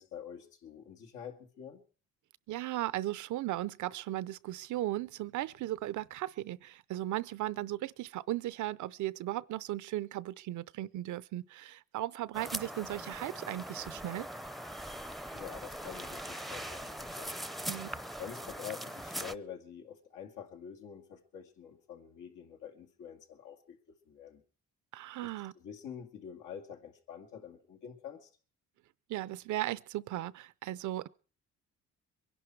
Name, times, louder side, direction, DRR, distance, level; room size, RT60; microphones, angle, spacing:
voice 1, 0.0-1.8 15.3-17.4 18.2-24.4 25.2-28.3, left 8 dB, 90° left, 2.3 m, -47 dB
voice 2, 2.5-14.3 17.7-18.0 24.9-25.5 29.1-31.1, right 15 dB, 75° right, 0.7 m, -36 dB
sound 1, 12.3-19.3, equal, ahead, 0.6 m, -41 dB
23.0 x 11.0 x 4.6 m
cardioid pair, 90°, 30 cm